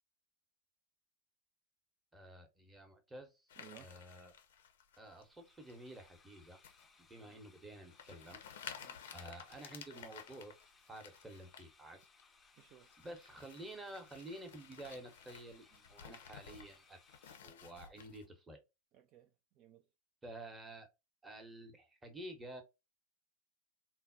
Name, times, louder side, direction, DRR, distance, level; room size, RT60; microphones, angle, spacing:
voice 1, 2.1-4.4 5.0-6.6 7.0-8.4 9.1-10.6 10.9-12.0 13.0-17.0 17.4-18.6 20.2-20.9 21.2-22.6, right 1 dB, 10° right, 0.8 m, -51 dB
sound 1, 3.5-5.2 5.7-6.1 6.6-6.9 7.4-7.5 7.9-11.7 12.0-12.2 12.6-18.3, left 8 dB, 60° left, 0.5 m, -54 dB
voice 2, 3.6-3.9 7.2-7.3 8.8-9.0 12.6-13.0 18.9-19.9, right 10 dB, 40° right, 0.3 m, -60 dB
sound 2, 5.0-17.4, left 4 dB, 15° left, 0.5 m, -67 dB
3.8 x 2.1 x 2.5 m
figure-of-eight pair, 90°, 0 cm